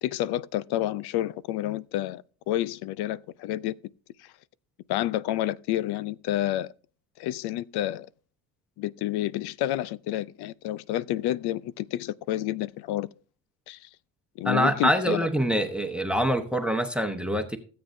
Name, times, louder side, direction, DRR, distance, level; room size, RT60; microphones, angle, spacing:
voice 1, 0.0-3.8 4.2-4.3 4.9-6.7 7.2-8.1 8.8-13.1 13.7-13.9 14.4-15.3, left 14 dB, 70° left, 0.6 m, -29 dB
voice 2, 14.4-17.6, equal, 5° right, 1.0 m, -25 dB
17.0 x 7.8 x 2.7 m
cardioid pair, 95°, 40 cm